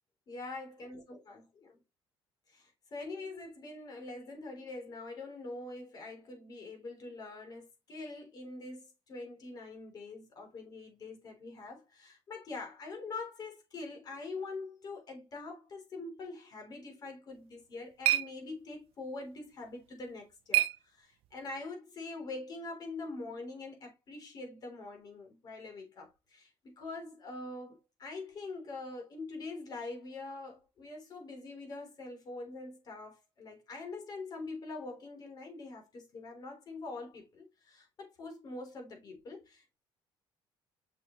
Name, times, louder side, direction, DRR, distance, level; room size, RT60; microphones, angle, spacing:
voice 1, 0.3-1.8 2.5-39.8, left 3 dB, 40° left, 3.3 m, -44 dB
sound 1, 17.3-21.5, right 15 dB, 80° right, 0.5 m, -35 dB
6.7 x 6.1 x 3.0 m
cardioid pair, 155°, 10 cm